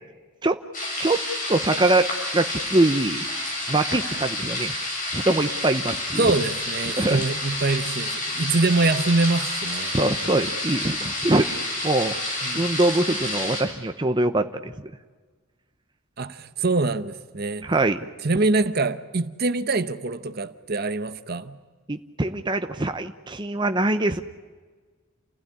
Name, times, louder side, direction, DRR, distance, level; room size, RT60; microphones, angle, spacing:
sound 1, 0.7-13.6, left 1 dB, 40° left, 7.3 m, -29 dB
voice 1, 1.5-2.1 2.3-3.2 3.7-4.7 5.1-6.3 7.0-7.2 9.9-12.2 12.5-14.7 17.6-18.0 21.9-24.2, right 2 dB, 20° right, 0.8 m, -23 dB
voice 2, 6.2-10.0 12.4-12.6 16.2-17.7 18.2-21.6, right 3 dB, 45° right, 0.9 m, -24 dB
29.0 x 16.0 x 9.9 m
head